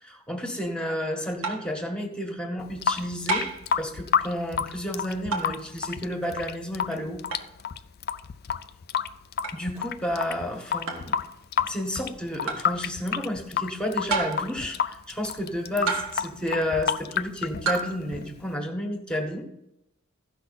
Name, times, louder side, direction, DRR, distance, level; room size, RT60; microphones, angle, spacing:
voice 1, 0.0-3.4 3.8-7.2 9.5-11.2 11.6-19.4, left 1 dB, 5° left, 2 dB, 1.6 m, -31 dB
sound 1, 1.4-1.8 3.3-3.7 5.3-5.6 7.3-7.5 9.4-9.6 10.9-11.1 12.5-12.7 14.1-14.6 15.9-16.3 17.7-18.0, right 4 dB, 75° right, 1.6 m, -29 dB
Water tap faucet / Sink (filling or washing) / Drip, 2.6-18.5, left 7 dB, 50° left, 0.4 m, -30 dB
15.0 x 5.9 x 4.3 m, 0.83 s
head